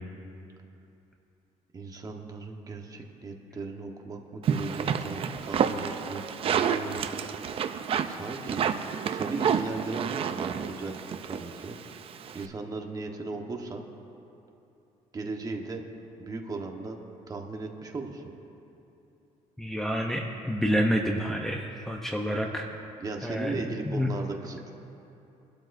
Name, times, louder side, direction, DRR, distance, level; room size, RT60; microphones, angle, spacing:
voice 1, 1.7-7.1 8.1-8.7 9.1-11.8 12.3-13.8 15.1-15.8 16.2-17.0 17.3-18.2 23.0-24.7, right 3 dB, 30° right, 2 dB, 1.3 m, -37 dB
sound 1, 4.4-12.4, right 7 dB, 45° right, 0.6 m, -30 dB
voice 2, 19.6-22.7 23.2-24.1, equal, 5° left, -1 dB, 0.7 m, -28 dB
23.5 x 12.0 x 2.7 m, 2.8 s
cardioid pair, 130°, 13 cm